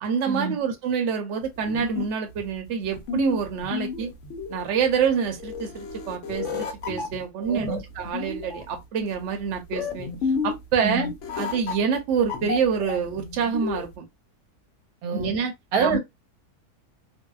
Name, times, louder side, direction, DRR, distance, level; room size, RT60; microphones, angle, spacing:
voice 1, 0.0-4.1 4.5-7.7 8.0-10.1 10.4-11.1 11.4-14.1 15.1-15.5 15.8-16.0, right 6 dB, 65° right, 0.9 m, -26 dB
sound 1, 1.4-13.9, left 5 dB, 65° left, 0.8 m, -32 dB
voice 2, 7.4-7.8 10.8-11.1 15.0-15.3 15.7-16.0, right 5 dB, 85° right, 1.3 m, -26 dB
2.6 x 2.1 x 2.3 m
omnidirectional pair, 1.5 m